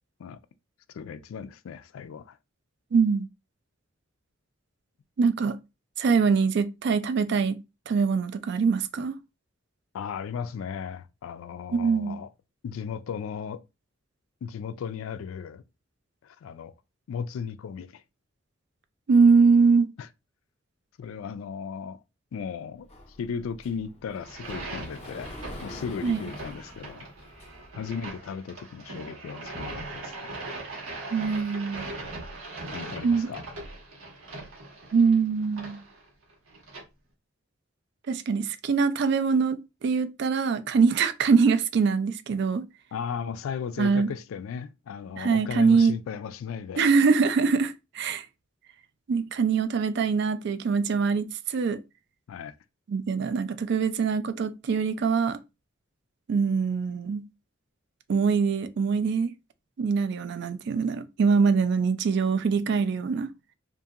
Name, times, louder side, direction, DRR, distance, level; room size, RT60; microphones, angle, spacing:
voice 1, 0.9-2.4 9.9-12.3 12.6-13.6 14.4-15.6 16.2-16.7 17.1-18.0 20.0-20.1 21.0-22.0 22.3-22.9 23.2-25.3 25.6-27.1 27.8-30.4 32.7-33.5 42.9-46.9 52.3-52.5, left 6 dB, 80° left, 0.3 m, -36 dB
voice 2, 2.9-3.3 5.2-5.6 6.0-9.1 11.7-12.2 19.1-19.9 26.0-26.2 31.1-31.9 33.0-33.3 34.9-35.8 38.1-42.6 43.8-44.1 45.2-45.9 46.8-48.3 49.1-51.8 52.9-55.4 56.3-57.3 58.1-59.3 59.8-63.3, right 5 dB, 55° right, 0.3 m, -23 dB
Sliding door, 22.9-27.9, left 1 dB, 30° left, 0.6 m, -44 dB
sound 1, 24.2-36.8, right 2 dB, 90° right, 1.2 m, -40 dB
2.8 x 2.5 x 2.4 m
head